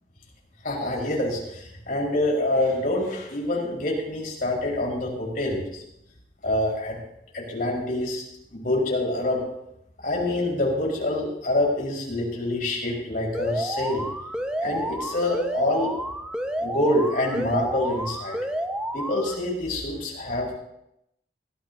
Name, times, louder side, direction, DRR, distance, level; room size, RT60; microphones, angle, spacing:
voice 1, 0.6-5.8 6.4-7.0 7.3-8.2 8.5-9.4 10.0-14.1 14.6-15.9 16.6-18.4 18.9-20.5, left 1 dB, 55° left, -3 dB, 4.8 m, -26 dB
Alarm, 13.3-19.3, equal, 5° right, 0.8 m, -30 dB
20.5 x 14.5 x 2.8 m, 0.81 s
head